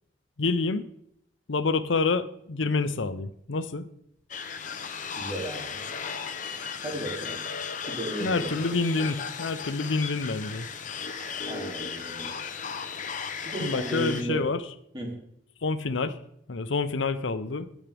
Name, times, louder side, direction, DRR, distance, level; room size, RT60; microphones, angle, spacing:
voice 1, 0.4-0.8 1.5-3.9 8.2-10.7 13.6-14.6 15.6-16.2 16.5-17.7, left 3 dB, 90° left, 12 dB, 0.7 m, -27 dB
sound 1, 4.3-14.2, left 6 dB, 45° left, 0.8 m, -36 dB
voice 2, 5.1-5.6 6.8-7.4 7.9-8.8 11.4-12.3 13.4-14.4 14.9-15.2, right 1 dB, 25° right, -1 dB, 2.8 m, -34 dB
19.5 x 7.3 x 3.5 m, 0.74 s
head